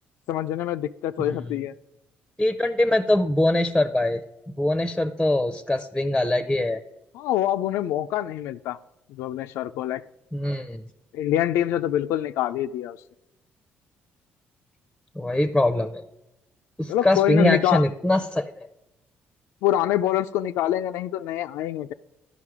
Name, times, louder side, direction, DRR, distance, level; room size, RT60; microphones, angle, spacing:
voice 1, 0.3-1.7 7.1-8.8 9.1-10.0 11.1-13.0 16.9-17.9 19.6-21.9, left 12 dB, 85° left, 9 dB, 0.3 m, -25 dB
voice 2, 1.2-1.5 2.4-4.2 4.6-6.8 10.3-10.8 15.2-16.0 16.8-18.5, left 1 dB, 5° left, 10 dB, 0.6 m, -23 dB
12.0 x 5.4 x 4.8 m, 0.92 s
cardioid pair, 95°, 4 cm